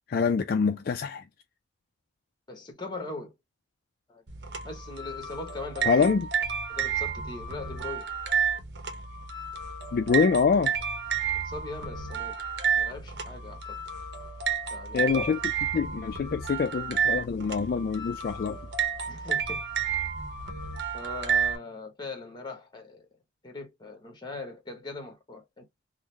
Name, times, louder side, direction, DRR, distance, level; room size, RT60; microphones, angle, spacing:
voice 1, 0.1-1.2 5.9-6.3 9.9-10.7 14.9-18.6, left 5 dB, 55° left, 0.3 m, -25 dB
voice 2, 2.5-3.3 4.1-4.2 4.6-6.1 6.7-8.1 11.4-12.3 12.7-13.8 14.7-15.2 19.1-19.6 20.9-23.1 23.4-25.6, left 2 dB, 25° left, 1.1 m, -40 dB
sound 1, 4.3-21.6, right 7 dB, 65° right, 0.8 m, -31 dB
3.8 x 2.0 x 3.0 m
head